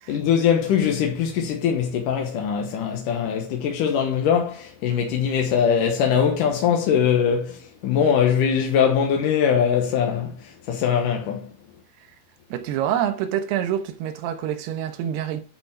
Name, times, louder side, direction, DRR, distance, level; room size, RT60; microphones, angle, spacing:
voice 1, 0.1-11.5, left 7 dB, 65° left, 2.1 m, -22 dB
voice 2, 12.5-15.4, right 10 dB, 70° right, 3.1 m, -26 dB
10.5 x 5.4 x 6.7 m
omnidirectional pair, 5.2 m